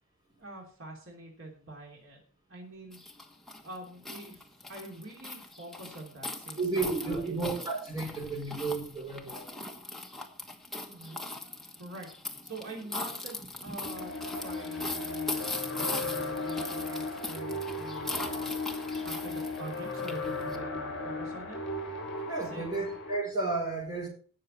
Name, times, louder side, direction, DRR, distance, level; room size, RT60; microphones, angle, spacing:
voice 1, 0.4-2.2 2.5-3.0 3.6-4.4 4.7-7.7 10.9-11.2 11.8-12.1 12.4-18.5 19.0-21.6 22.5-22.8, right 2 dB, 60° right, -1 dB, 3.0 m, -45 dB
sound 1, 2.9-20.6, left 2 dB, ahead, 1.3 m, -40 dB
voice 2, 6.6-9.5 22.3-24.1, right 3 dB, 20° right, -1 dB, 5.2 m, -32 dB
sound 2, 13.8-23.2, left 3 dB, 55° left, 7.1 m, -36 dB
18.0 x 6.6 x 4.3 m, 0.42 s
head